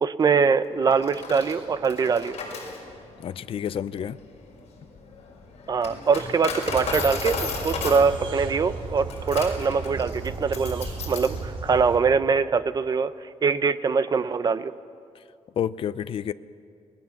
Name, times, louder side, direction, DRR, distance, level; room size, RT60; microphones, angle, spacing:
voice 1, 0.0-2.4 5.7-13.1 13.4-14.7, right 5 dB, 35° right, 0.8 m, -23 dB
Coin (dropping), 0.9-11.4, left 4 dB, 70° left, 5.7 m, -35 dB
voice 2, 3.2-4.2 15.6-16.3, left 9 dB, 55° left, 0.6 m, -29 dB
sound 1, 6.7-12.0, right 3 dB, 50° right, 4.1 m, -35 dB
28.5 x 20.5 x 7.2 m
wide cardioid pair, 155°, 11 cm